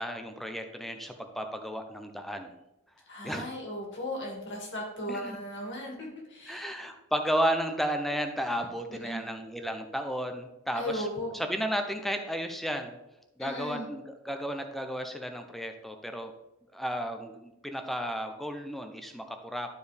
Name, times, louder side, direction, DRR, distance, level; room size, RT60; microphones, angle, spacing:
voice 1, 0.0-2.5 3.2-3.5 5.1-5.4 6.5-11.1 11.3-13.0 13.4-16.3 16.7-19.7, equal, ahead, 5 dB, 0.6 m, -33 dB
voice 2, 3.1-6.7 8.9-9.3 10.7-11.3 13.4-13.9, left 1 dB, 55° left, -1 dB, 2.2 m, -36 dB
11.5 x 4.6 x 3.4 m, 0.93 s
head